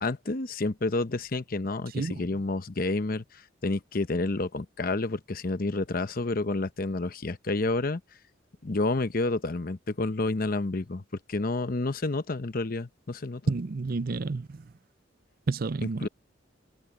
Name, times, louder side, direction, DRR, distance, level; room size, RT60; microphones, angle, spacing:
voice 1, 0.0-3.2 3.6-8.0 8.6-11.0 11.3-13.4 16.0-16.1, left 2 dB, 50° left, 0.8 m, -29 dB
voice 2, 13.5-14.6 15.5-16.1, right 3 dB, 50° right, 0.5 m, -30 dB
head